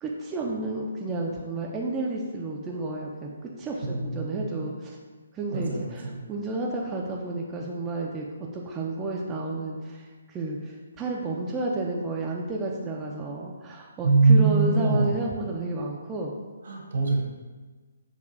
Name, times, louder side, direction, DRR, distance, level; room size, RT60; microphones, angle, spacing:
voice 1, 0.0-3.3 3.6-5.0 5.3-16.3, right 2 dB, 15° right, -2 dB, 0.4 m, -31 dB
voice 2, 3.8-4.6 5.5-6.2 14.0-15.3 16.6-17.2, right 3 dB, 65° right, -1 dB, 1.0 m, -23 dB
6.4 x 2.4 x 2.5 m, 1.3 s
hypercardioid pair, 145°, 0 cm